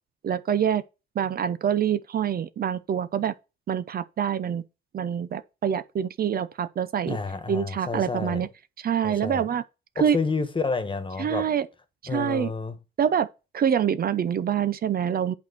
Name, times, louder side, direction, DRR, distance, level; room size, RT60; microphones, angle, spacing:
voice 1, 0.2-0.8 1.2-3.3 3.7-4.6 4.9-7.2 7.5-8.5 8.8-9.6 10.0-10.2 11.2-11.7 12.1-12.5 13.0-13.3 13.5-15.3, right 8 dB, 50° right, 0.6 m, -25 dB
voice 2, 7.1-8.5 9.0-9.4 10.0-11.5 12.1-12.8, left 4 dB, 25° left, 1.4 m, -29 dB
8.3 x 4.4 x 5.8 m
cardioid pair, 90°, 20 cm